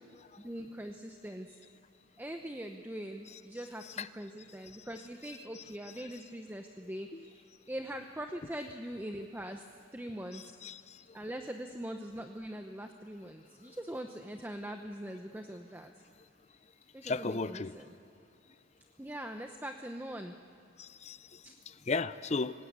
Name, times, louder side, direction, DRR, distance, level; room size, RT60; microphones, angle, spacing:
voice 1, 0.4-1.6 2.2-9.7 9.9-10.9 11.1-15.9 16.9-17.9 19.0-20.4 21.4-21.6, right 1 dB, 10° right, 5 dB, 0.8 m, -42 dB
voice 2, 10.3-11.0 17.0-17.7 20.8-22.5, left 3 dB, 35° left, 14 dB, 0.5 m, -36 dB
26.5 x 17.5 x 8.3 m, 2.6 s
head